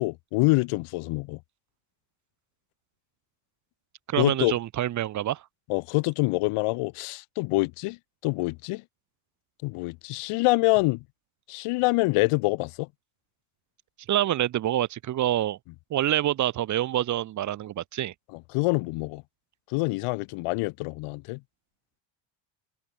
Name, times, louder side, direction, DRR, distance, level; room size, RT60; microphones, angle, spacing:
voice 1, 0.0-1.4 4.2-4.5 5.7-8.0 8.2-8.8 9.6-11.0 11.5-12.9 18.5-19.2 19.7-21.4, left 24 dB, 85° left, 4.1 m, -25 dB
voice 2, 4.1-5.4 14.1-15.6 15.9-18.1, right 12 dB, 35° right, 0.7 m, -26 dB
cardioid pair, 160°, 49 cm